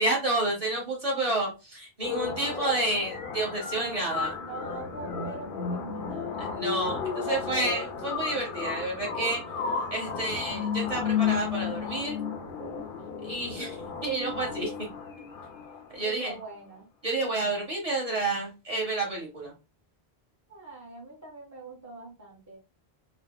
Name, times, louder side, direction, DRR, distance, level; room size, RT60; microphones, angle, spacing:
voice 1, 0.0-4.3 6.4-9.4 9.9-12.2 13.2-14.7 15.9-16.4 17.0-19.5, right 2 dB, 35° right, -3 dB, 1.1 m, -30 dB
sound 1, 2.0-16.0, left 6 dB, 60° left, 0.7 m, -33 dB
voice 2, 3.7-4.1 4.4-6.4 9.9-10.5 16.0-16.9 20.5-22.6, right 3 dB, 20° right, -4 dB, 0.8 m, -43 dB
3.2 x 2.0 x 2.2 m, 0.28 s
omnidirectional pair, 1.0 m